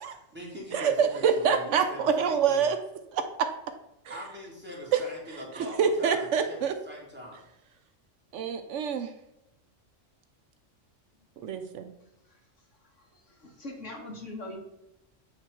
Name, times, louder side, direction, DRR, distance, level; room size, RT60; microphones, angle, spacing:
voice 1, 0.0-2.7 4.1-6.6 6.8-7.4, equal, 10° right, -4 dB, 2.1 m, -42 dB
voice 2, 0.7-2.8 3.1-3.5 4.9-5.0 5.6-6.7 8.3-9.1 11.4-11.9, right 7 dB, 70° right, 8 dB, 0.9 m, -26 dB
voice 3, 13.3-14.6, left 2 dB, 70° left, -1 dB, 1.9 m, -40 dB
8.4 x 3.3 x 4.5 m, 0.87 s
omnidirectional pair, 1.3 m